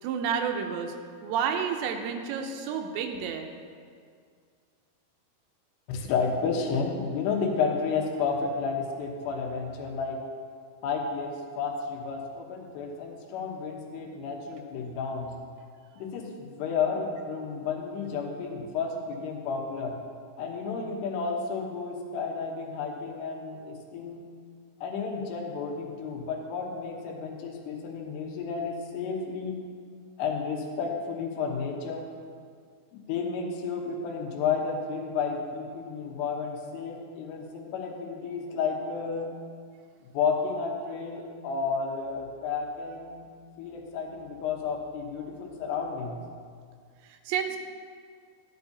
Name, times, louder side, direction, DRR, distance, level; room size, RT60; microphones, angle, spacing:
voice 1, 0.0-0.9 1.2-3.5 47.0-47.6, right 7 dB, 90° right, 4 dB, 2.9 m, -30 dB
voice 2, 5.9-10.2 10.8-15.3 16.0-19.9 20.4-24.3 24.8-29.6 30.2-32.1 32.9-39.3 40.0-43.3 43.6-46.2, left 5 dB, 80° left, 1 dB, 3.1 m, -32 dB
12.0 x 11.5 x 2.8 m, 2.1 s
omnidirectional pair, 4.9 m